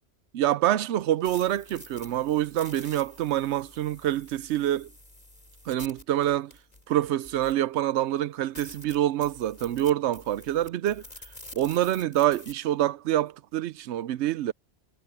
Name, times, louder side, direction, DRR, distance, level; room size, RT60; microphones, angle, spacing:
voice 1, 0.3-4.9 5.7-6.5 6.9-11.0 11.5-14.5, right 12 dB, 85° right, 0.9 m, -26 dB
sound 1, 1.0-7.8 8.2-8.3 8.5-12.5, left 1 dB, 35° left, 4.3 m, -48 dB
omnidirectional pair, 1.1 m